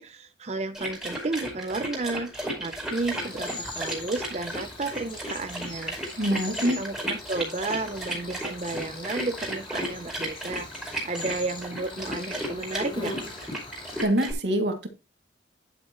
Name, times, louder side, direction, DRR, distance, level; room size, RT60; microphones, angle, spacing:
voice 1, 0.0-2.3 2.6-13.1, right 3 dB, 40° right, 0.7 m, -32 dB
sound 1, 0.7-14.3, right 1 dB, 5° right, 5.0 m, -34 dB
Cricket, 2.9-14.0, left 2 dB, 30° left, 3.0 m, -41 dB
voice 2, 6.2-6.8 14.0-14.9, equal, 80° right, 2.5 m, -25 dB
10.5 x 7.9 x 3.1 m
head